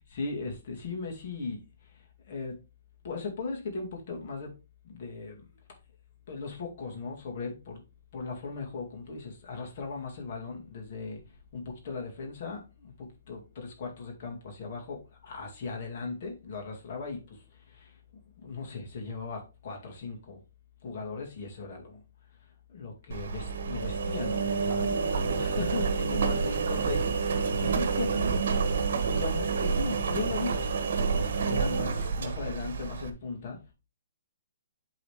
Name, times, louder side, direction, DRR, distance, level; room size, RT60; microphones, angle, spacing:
voice 1, 0.0-2.6 3.0-4.5 4.8-5.5 6.3-7.8 8.1-11.2 11.5-18.0 18.4-20.4 20.8-22.0 22.7-28.3 29.0-30.7 31.1-33.6, left 4 dB, 50° left, 2.1 m, -38 dB
Engine, 23.1-33.1, right 5 dB, 65° right, 1.0 m, -28 dB
8.0 x 3.9 x 3.3 m
hypercardioid pair, 145°, 0 cm